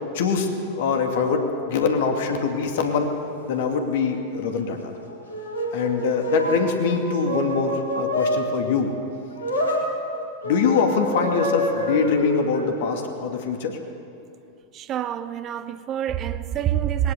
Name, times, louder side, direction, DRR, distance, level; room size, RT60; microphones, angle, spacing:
voice 1, 0.1-3.1 3.5-4.9 5.7-8.9 10.4-13.8, left 5 dB, 55° left, 4 dB, 2.5 m, -23 dB
sound 1, 4.9-8.5 9.4-9.9 10.4-12.9, equal, 75° left, 3.8 m, -27 dB
voice 2, 14.7-17.1, right 11 dB, 30° right, 13 dB, 0.8 m, -26 dB
21.0 x 18.0 x 8.1 m, 2.7 s
figure-of-eight pair, 90°, 0 cm